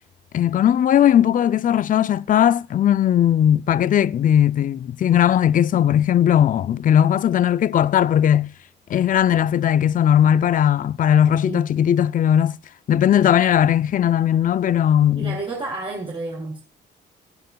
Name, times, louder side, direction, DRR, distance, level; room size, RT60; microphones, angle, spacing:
voice 1, 0.3-8.5 8.9-12.6 12.9-15.4, left 10 dB, 45° left, 0.4 m, -18 dB
voice 2, 15.2-16.6, right 3 dB, 25° right, 3.2 m, -30 dB
16.0 x 10.0 x 2.3 m
cardioid pair, 90°, 20 cm